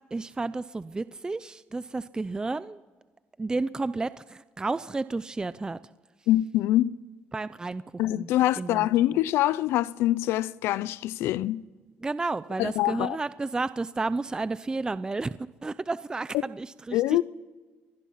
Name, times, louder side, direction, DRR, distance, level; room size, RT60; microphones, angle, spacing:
voice 1, 0.1-2.8 3.4-5.8 7.3-7.8 8.1-8.3 8.6-9.2 12.0-17.2, right 3 dB, 20° right, 0.6 m, -32 dB
voice 2, 6.3-6.9 8.0-11.6 12.6-13.2 16.9-17.2, left 14 dB, 90° left, 0.6 m, -24 dB
26.0 x 19.5 x 5.8 m
cardioid pair, 95°, 4 cm